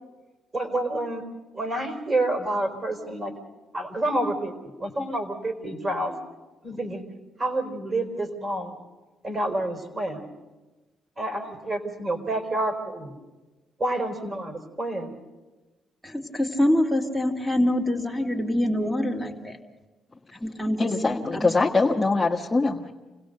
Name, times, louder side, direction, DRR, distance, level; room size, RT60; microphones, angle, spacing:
voice 1, 0.5-1.2 1.5-3.3 3.7-6.1 6.6-7.0 7.4-8.8 9.2-10.3 11.2-13.2 13.8-15.2, right 1 dB, 35° right, 5 dB, 4.1 m, -28 dB
voice 2, 16.0-19.6 20.3-22.0, left 1 dB, ahead, 4 dB, 2.6 m, -26 dB
voice 3, 20.8-22.9, left 3 dB, 15° left, -4 dB, 1.5 m, -23 dB
27.0 x 17.0 x 6.6 m, 1.2 s
cardioid pair, 85°, 0 cm